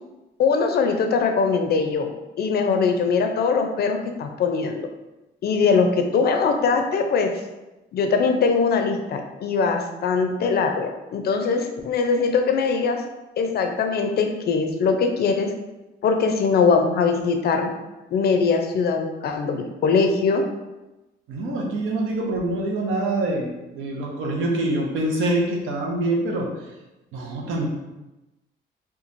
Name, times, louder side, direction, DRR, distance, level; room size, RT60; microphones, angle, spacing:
voice 1, 0.4-2.1 2.4-4.9 5.4-7.3 7.9-13.0 13.4-15.5 16.0-17.7 18.1-20.4, left 5 dB, 55° left, 5 dB, 0.4 m, -21 dB
voice 2, 21.3-26.5 27.1-27.7, right 2 dB, 85° right, -1 dB, 0.6 m, -25 dB
3.0 x 2.3 x 2.5 m, 1.0 s
cardioid pair, 90°, 20 cm